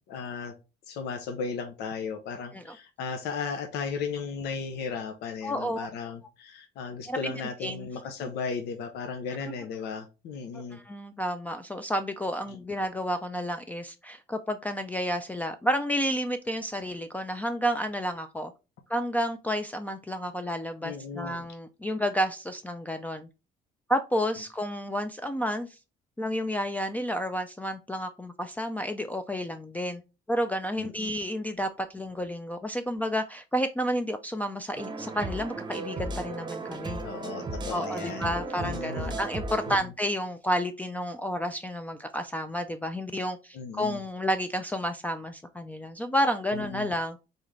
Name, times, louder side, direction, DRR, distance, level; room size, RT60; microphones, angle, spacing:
voice 1, 0.1-0.5 0.9-10.8 12.5-12.6 20.8-21.4 30.8-31.2 37.0-39.2 39.7-39.8 43.5-44.0 46.5-46.9, left 5 dB, 80° left, 0.8 m, -36 dB
voice 2, 5.4-5.9 7.1-7.9 9.4-9.5 10.7-18.5 18.9-23.3 23.9-25.8 26.2-30.0 30.3-37.0 37.7-47.2, equal, 10° left, 0.4 m, -31 dB
sound 1, 34.7-39.8, right 2 dB, 25° right, 0.8 m, -35 dB
4.1 x 3.6 x 3.2 m
cardioid pair, 110°, 17 cm